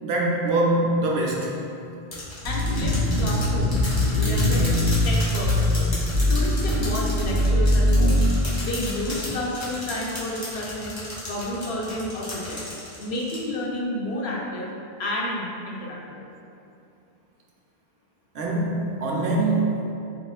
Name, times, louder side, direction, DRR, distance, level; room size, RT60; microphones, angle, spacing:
voice 1, 0.0-1.5 18.3-19.9, right 2 dB, 75° right, -2 dB, 0.8 m, -23 dB
sound 1, 2.1-13.4, left 1 dB, 30° left, 0.8 m, -33 dB
voice 2, 2.4-4.7 5.0-5.9 6.3-8.2 8.6-11.0 11.3-12.6 13.0-14.7 15.0-16.3, left 1 dB, 85° left, -3 dB, 0.9 m, -31 dB
sound 2, 2.4-8.4, left 1 dB, 50° left, 1.8 m, -22 dB
4.0 x 2.9 x 2.3 m, 2.7 s
omnidirectional pair, 1.1 m